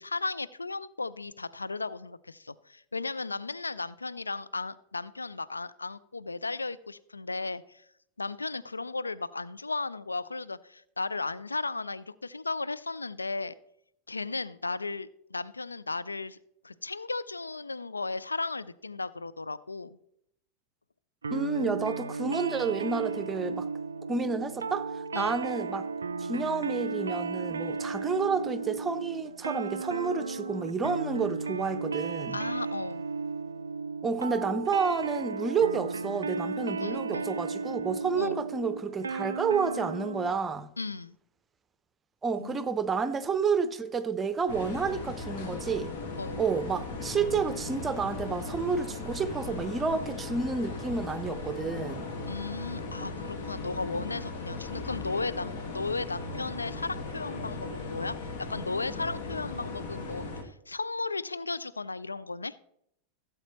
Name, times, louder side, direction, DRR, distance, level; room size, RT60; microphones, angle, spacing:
voice 1, 0.0-7.8 8.2-13.6 14.1-16.4 16.6-20.0 25.1-25.3 32.3-33.0 36.8-37.3 38.1-38.4 40.8-41.1 42.4-42.6 46.2-46.4 52.2-62.5, left 3 dB, 80° left, 0.3 m, -35 dB
sound 1, 21.2-40.4, right 4 dB, 75° right, 0.4 m, -34 dB
voice 2, 21.3-23.7 24.1-25.9 26.2-32.4 34.0-40.7 42.2-45.9 46.4-52.1, right 5 dB, 15° right, 0.7 m, -30 dB
sound 2, 44.5-60.4, left 3 dB, 50° left, 1.5 m, -38 dB
16.0 x 7.6 x 3.0 m
figure-of-eight pair, 90°, 0 cm